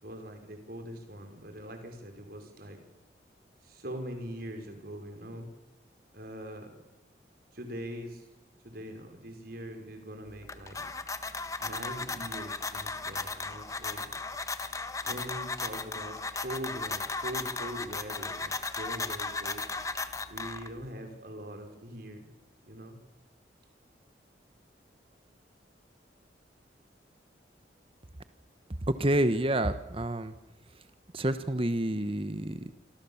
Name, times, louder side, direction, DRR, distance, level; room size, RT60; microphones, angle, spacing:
voice 1, 0.0-2.8 3.6-5.5 6.1-6.7 7.5-8.3 8.6-10.8 11.6-14.1 15.0-19.6 20.3-22.2 22.6-23.0, equal, 55° right, 5 dB, 5.3 m, -42 dB
sound 1, 10.3-20.9, left 3 dB, 20° left, 1.4 m, -36 dB
voice 2, 29.0-30.3 31.1-32.7, right 1 dB, 30° right, 11 dB, 1.2 m, -28 dB
28.0 x 26.0 x 7.2 m, 1.1 s
head